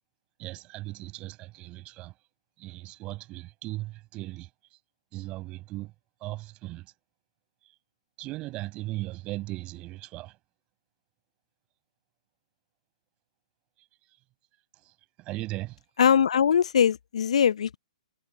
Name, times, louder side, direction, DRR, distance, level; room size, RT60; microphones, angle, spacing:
voice 1, 0.4-2.1 2.6-4.5 5.1-5.9 6.2-6.9 8.2-10.4 15.2-15.8, right 19 dB, 25° right, 7.6 m, -37 dB
voice 2, 16.0-17.8, left 8 dB, 60° left, 0.7 m, -21 dB
figure-of-eight pair, 125°, 4 cm